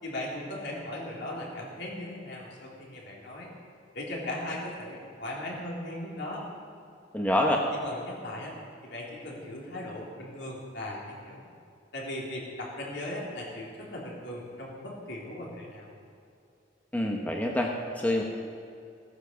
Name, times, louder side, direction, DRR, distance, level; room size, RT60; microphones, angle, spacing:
voice 1, 0.0-3.5 3.9-6.4 7.5-7.6 7.8-11.5 11.9-15.9, left 1 dB, 65° left, -4 dB, 3.6 m, -38 dB
voice 2, 7.1-7.7 16.9-18.2, left 1 dB, 10° left, 0 dB, 1.0 m, -26 dB
16.5 x 9.7 x 6.9 m, 2.5 s
head